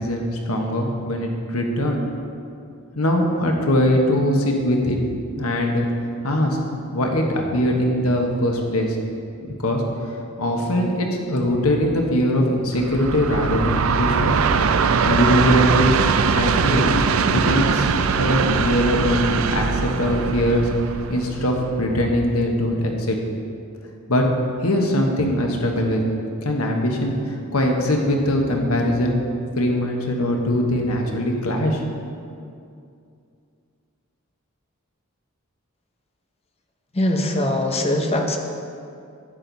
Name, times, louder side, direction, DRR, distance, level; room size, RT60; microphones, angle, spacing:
voice 1, 0.0-2.0 2.9-5.0 5.4-5.9 6.2-9.0 9.6-9.8 10.4-14.4 15.0-15.9 16.3-16.9 17.3-17.9 18.2-20.7 21.1-23.2 24.1-24.2 24.6-26.0 26.4-29.2 29.6-31.8, left 1 dB, 90° left, 1 dB, 1.3 m, -21 dB
Train, 12.8-22.0, right 5 dB, 70° right, 0.5 m, -21 dB
voice 2, 36.9-38.4, left 1 dB, 30° left, 3 dB, 0.9 m, -21 dB
11.0 x 8.7 x 4.1 m, 2.5 s
head